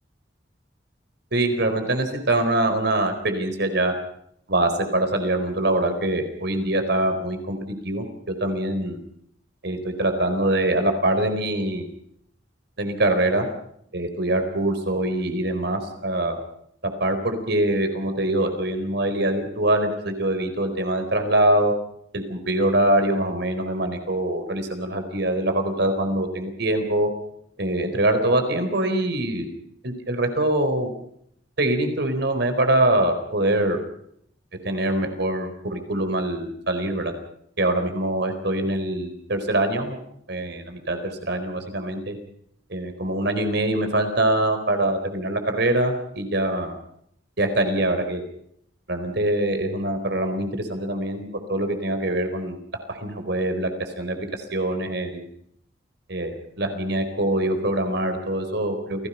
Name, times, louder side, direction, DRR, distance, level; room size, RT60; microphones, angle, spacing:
voice 1, 1.3-3.9 4.5-9.0 9.6-11.9 12.8-13.5 13.9-16.4 16.8-21.7 22.1-27.1 27.6-29.5 29.8-30.9 31.6-33.8 34.6-37.1 37.6-40.0 40.3-41.0 41.3-42.2 42.7-46.8 47.4-48.2 48.9-52.6 52.9-53.7 54.0-55.3 56.1-59.1, right 1 dB, 65° right, 7 dB, 4.2 m, -24 dB
28.5 x 18.5 x 5.6 m, 0.70 s
head